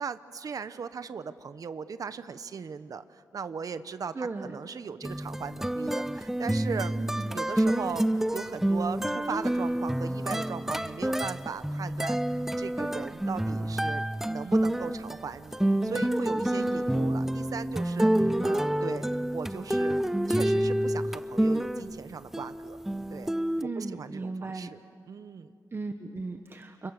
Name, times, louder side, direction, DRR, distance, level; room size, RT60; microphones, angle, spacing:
voice 1, 0.0-6.9 7.3-20.0 20.3-22.8 23.1-23.3 23.8-24.8 25.1-25.5, right 6 dB, 60° right, 12 dB, 1.1 m, -38 dB
voice 2, 4.1-4.6 6.9-7.3 16.5-16.9 23.6-24.7 25.7-26.9, right 3 dB, 35° right, 6 dB, 1.3 m, -36 dB
sound 1, 5.0-22.0 22.3-23.6, right 1 dB, 5° right, 0.7 m, -28 dB
30.0 x 28.5 x 6.7 m, 2.4 s
wide cardioid pair, 110°, 7 cm